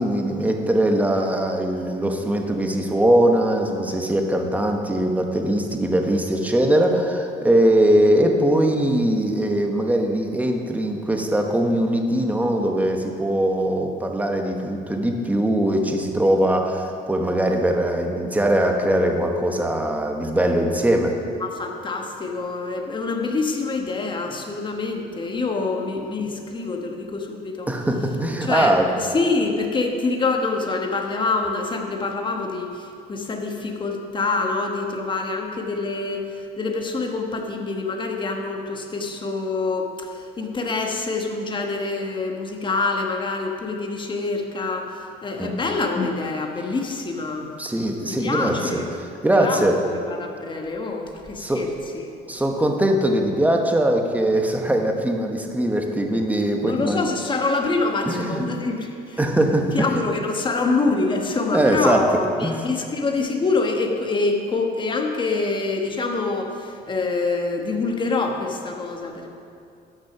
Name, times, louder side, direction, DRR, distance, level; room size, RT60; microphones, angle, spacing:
voice 1, 0.0-21.1 27.7-28.9 45.4-45.5 47.6-48.8 49.2-49.8 51.4-51.7 52.3-57.0 58.0-58.4 59.2-59.9 61.5-62.1 62.4-62.6, right 1 dB, 10° right, 3 dB, 1.2 m, -21 dB
voice 2, 21.4-27.7 28.4-47.5 48.1-48.9 49.3-52.1 56.7-59.2 59.7-69.3, left 3 dB, 30° left, 3 dB, 1.3 m, -26 dB
12.0 x 6.3 x 6.0 m, 2.6 s
cardioid pair, 110°, 17 cm